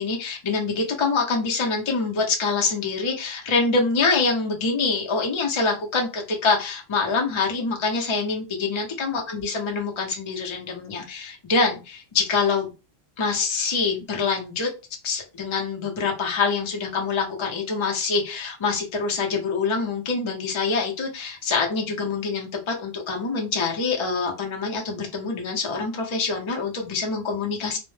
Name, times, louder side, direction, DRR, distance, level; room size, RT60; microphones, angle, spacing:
voice 1, 0.0-12.7 13.2-14.7 15.0-27.8, left 4 dB, 35° left, 0 dB, 0.5 m, -25 dB
2.0 x 2.0 x 3.1 m, 0.30 s
omnidirectional pair, 1.1 m